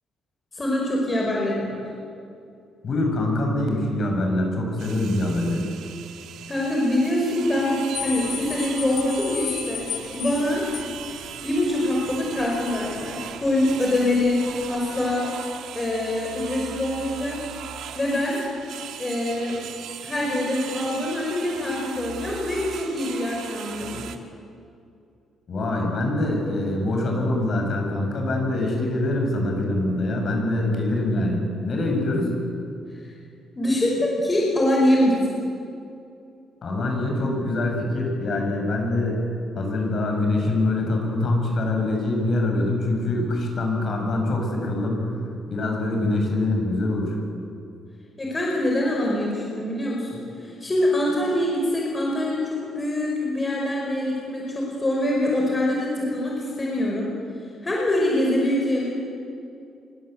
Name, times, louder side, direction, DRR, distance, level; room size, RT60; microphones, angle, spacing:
voice 1, 0.5-1.8 6.5-9.9 10.1-10.6 11.4-14.4 14.7-15.3 15.7-17.4 17.9-18.4 19.0-19.6 20.0-24.1 33.0-33.1 33.6-35.2 48.2-57.1 57.6-58.9, left 1 dB, 20° left, -2 dB, 5.5 m, -24 dB
voice 2, 2.8-5.7 25.5-32.4 36.6-39.2 39.5-45.2 45.5-47.2, left 2 dB, 45° left, 2 dB, 7.5 m, -24 dB
sound 1, 4.8-24.2, right 9 dB, 80° right, 2.2 m, -38 dB
sound 2, 7.9-15.1, left 9 dB, 75° left, 3.3 m, -37 dB
28.0 x 25.0 x 8.3 m, 2.5 s
cardioid pair, 150°, 0 cm